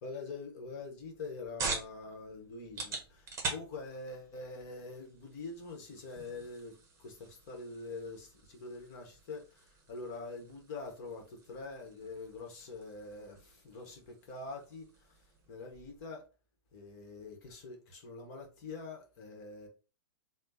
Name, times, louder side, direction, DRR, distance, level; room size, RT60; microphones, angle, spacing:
voice 1, 0.0-16.2 16.7-19.7, left 3 dB, 40° left, 1.1 m, -45 dB
sound 1, 1.0-16.1, right 4 dB, 20° right, 1.0 m, -45 dB
3.3 x 2.1 x 3.9 m
figure-of-eight pair, 105°, 13 cm